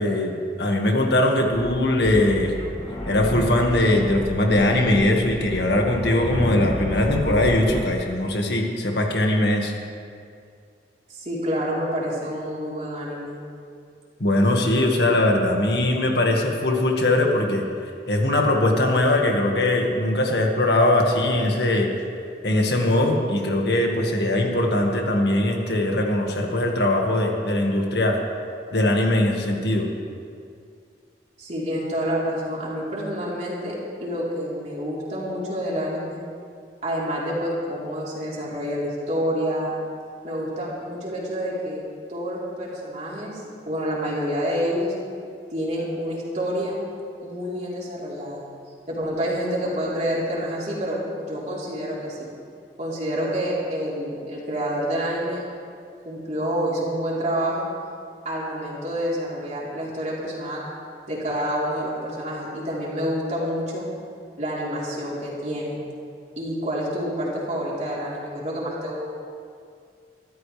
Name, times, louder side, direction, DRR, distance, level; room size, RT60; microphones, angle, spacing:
voice 1, 0.0-2.5 3.1-9.7 14.2-17.6 18.1-21.9 22.4-28.2 28.7-29.9, left 1 dB, 65° left, 1 dB, 1.9 m, -21 dB
sound 1, 1.5-7.8, equal, 30° left, 2.7 m, -31 dB
voice 2, 11.1-13.4 31.4-36.2 36.8-39.7 40.2-41.8 42.1-44.9 45.5-46.7 47.2-48.4 48.9-52.3 52.8-55.4 56.0-57.7 58.2-60.7 61.1-63.9 64.4-65.8 66.4-69.1, equal, 40° right, -6 dB, 4.0 m, -28 dB
24.5 x 13.5 x 3.4 m, 2.3 s
head